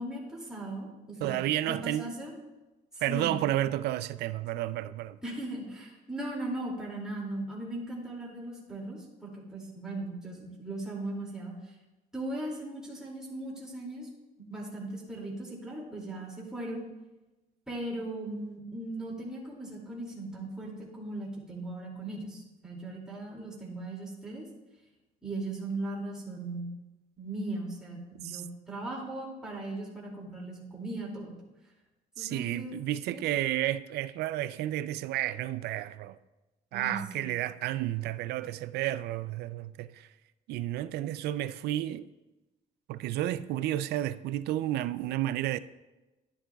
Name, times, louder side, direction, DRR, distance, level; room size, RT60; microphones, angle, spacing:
voice 1, 0.0-1.4 1.6-2.3 3.1-3.5 5.2-11.7 12.1-14.1 14.4-16.8 17.7-24.5 25.2-26.7 27.2-31.3 32.2-32.8 33.1-33.3 36.7-37.3, right 2 dB, 5° right, 2.4 m, -38 dB
voice 2, 1.2-2.1 3.0-5.2 28.2-28.4 32.2-36.2 36.7-40.1 40.5-42.1 42.9-45.6, right 14 dB, 75° right, 0.4 m, -31 dB
11.0 x 10.0 x 2.3 m
cardioid pair, 110°, 17 cm